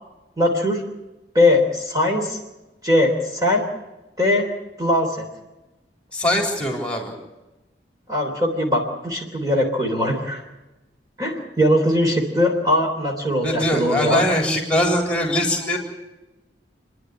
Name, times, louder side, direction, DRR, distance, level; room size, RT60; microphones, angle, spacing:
voice 1, 0.4-0.8 1.3-2.4 2.8-3.6 4.2-4.5 4.8-5.2 8.1-10.4 11.2-14.2, left 1 dB, 20° right, 0 dB, 3.5 m, -20 dB
voice 2, 6.1-7.1 13.4-15.8, left 1 dB, 5° left, 2 dB, 4.0 m, -22 dB
29.5 x 11.0 x 9.9 m, 1.1 s
head